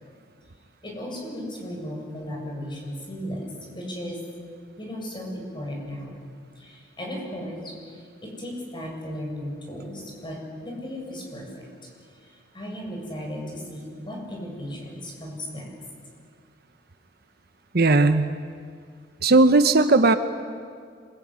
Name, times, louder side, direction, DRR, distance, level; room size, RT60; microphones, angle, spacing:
voice 1, 0.8-4.3 4.8-6.2 6.6-11.7 12.2-15.7, equal, 25° left, -1 dB, 7.7 m, -36 dB
voice 2, 17.7-18.2 19.2-20.2, right 3 dB, 55° right, 9 dB, 1.1 m, -17 dB
26.5 x 22.5 x 9.8 m, 2.2 s
head